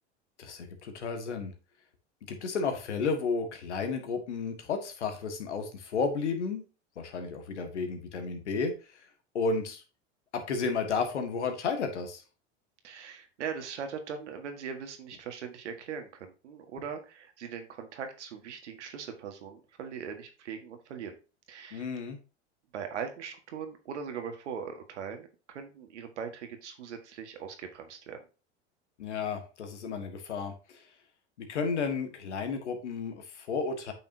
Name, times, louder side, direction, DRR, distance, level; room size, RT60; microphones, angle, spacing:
voice 1, 0.4-1.5 2.3-6.6 7.0-8.7 9.3-9.8 10.5-12.2 21.7-22.2 29.0-30.5 31.4-33.9, left 4 dB, 85° left, 6 dB, 1.8 m, -32 dB
voice 2, 12.8-21.1 21.5-21.9 22.7-28.2, right 6 dB, 85° right, 6 dB, 1.7 m, -40 dB
8.7 x 5.8 x 2.8 m, 0.33 s
hypercardioid pair, 90°, 34 cm